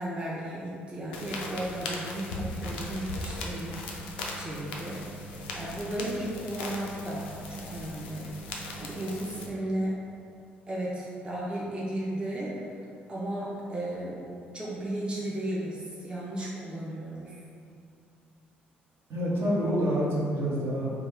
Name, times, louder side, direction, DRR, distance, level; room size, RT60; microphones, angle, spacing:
voice 1, 0.0-3.9 4.4-8.3 8.8-10.0 10.7-12.8 13.1-14.2 14.5-17.4, right 1 dB, 20° right, -6 dB, 0.6 m, -34 dB
sound 1, 1.1-9.5, left 1 dB, 75° left, 0.3 m, -38 dB
voice 2, 19.1-21.0, equal, 50° right, -6 dB, 0.8 m, -27 dB
3.0 x 2.3 x 3.5 m, 2.4 s
figure-of-eight pair, 45°, 5 cm